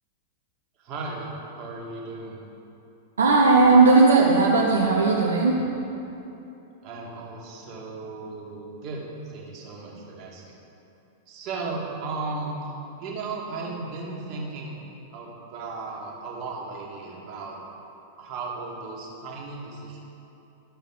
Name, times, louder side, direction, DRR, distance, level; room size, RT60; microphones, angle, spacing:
voice 1, 0.8-1.3 1.6-2.4 6.8-9.0 9.3-10.6 11.3-12.6 13.0-14.8 15.1-17.6 18.2-20.0, right 3 dB, 40° right, -3 dB, 1.8 m, -35 dB
voice 2, 3.2-5.7, right 3 dB, 75° right, -2 dB, 0.7 m, -17 dB
12.0 x 6.4 x 3.8 m, 2.9 s
figure-of-eight pair, 95°, 0 cm